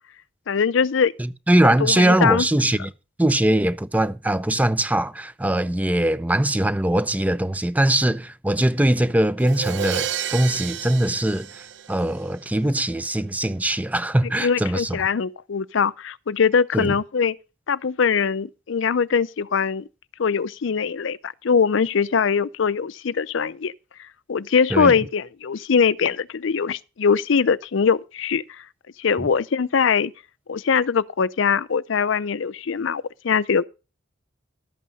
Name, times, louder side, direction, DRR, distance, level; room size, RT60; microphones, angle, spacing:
voice 1, 0.5-1.1 1.6-2.4 14.4-17.4 17.7-19.9 20.2-23.7 24.3-28.4 29.0-30.1 30.5-33.6, left 6 dB, 65° left, 0.5 m, -22 dB
voice 2, 1.2-2.9 3.2-15.0 16.7-16.9 24.7-24.9 29.2-29.3, right 1 dB, 10° right, 0.5 m, -21 dB
Crash cymbal, 9.4-12.3, right 9 dB, 60° right, 0.8 m, -31 dB
12.0 x 8.4 x 5.3 m
head